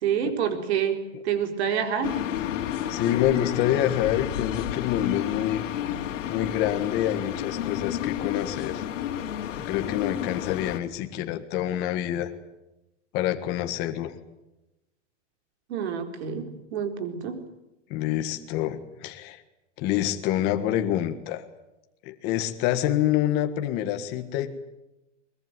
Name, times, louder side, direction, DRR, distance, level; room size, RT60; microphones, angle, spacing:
voice 1, 0.0-2.2 15.7-17.4, right 8 dB, 55° right, 7 dB, 4.4 m, -28 dB
sound 1, 2.0-10.8, left 10 dB, 80° left, 3.0 m, -31 dB
voice 2, 2.9-5.6 6.3-8.9 9.6-12.3 13.1-14.1 17.9-19.4 19.8-21.5 22.0-24.6, left 12 dB, 25° left, 6 dB, 1.6 m, -27 dB
23.0 x 22.0 x 9.3 m, 0.94 s
supercardioid pair, 180°, 37 cm